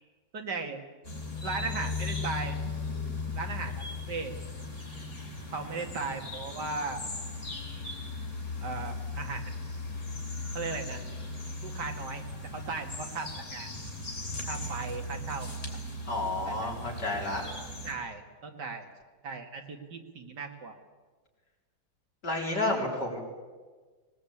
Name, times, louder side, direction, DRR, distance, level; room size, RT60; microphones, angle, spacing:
voice 1, 0.3-0.8 1.4-2.6 3.3-3.7 4.1-4.3 5.5-7.0 8.6-9.6 10.5-11.0 11.6-12.2 12.5-13.7 14.4-15.5 16.3-16.7 17.8-18.9 19.2-20.8, right 4 dB, 70° right, 4 dB, 2.6 m, -37 dB
sound 1, 1.0-17.9, left 2 dB, 40° left, 3.6 m, -37 dB
voice 2, 16.1-17.4 22.2-23.2, left 2 dB, 65° left, -1 dB, 4.6 m, -30 dB
20.5 x 19.0 x 8.6 m, 1.4 s
omnidirectional pair, 1.9 m